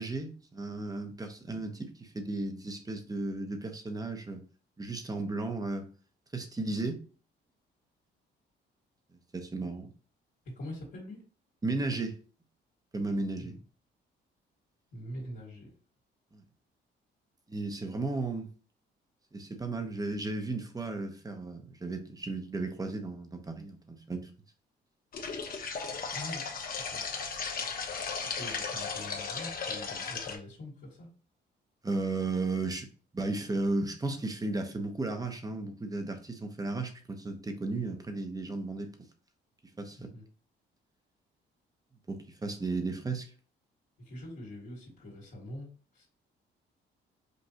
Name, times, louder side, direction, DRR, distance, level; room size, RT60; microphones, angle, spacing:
voice 1, 0.0-4.4 4.8-5.9 6.3-7.0 9.3-9.9 11.6-12.2 12.9-13.6 16.3-16.4 17.5-18.5 19.3-24.3 31.8-32.9 33.1-38.9 39.8-40.1 42.1-43.3, right 3 dB, 20° right, 0.9 m, -34 dB
voice 2, 10.5-11.2 13.4-13.6 14.9-15.7 26.1-27.0 28.2-31.1 40.1-40.2 44.0-45.7 45.9-46.1, left 1 dB, 65° left, 1.9 m, -44 dB
sound 1, 25.1-30.4, left 5 dB, 45° left, 0.9 m, -36 dB
5.3 x 2.6 x 2.8 m
cardioid pair, 90°, 20 cm